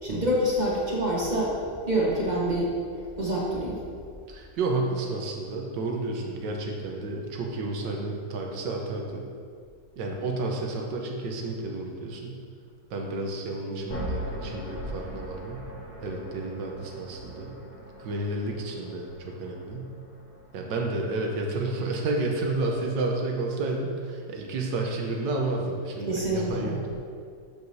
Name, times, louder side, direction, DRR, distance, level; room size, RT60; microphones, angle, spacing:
voice 1, 0.0-1.5 1.9-2.7 3.2-3.8 26.1-26.7, equal, 30° right, -4 dB, 1.1 m, -26 dB
voice 2, 4.3-9.3 10.0-12.4 12.9-15.6 16.0-17.5 18.0-19.9 20.5-27.1, right 2 dB, 80° right, 0 dB, 1.6 m, -31 dB
sound 1, 13.9-21.9, equal, 55° left, 2.0 m, -40 dB
12.0 x 4.8 x 2.7 m, 2.2 s
omnidirectional pair, 1.9 m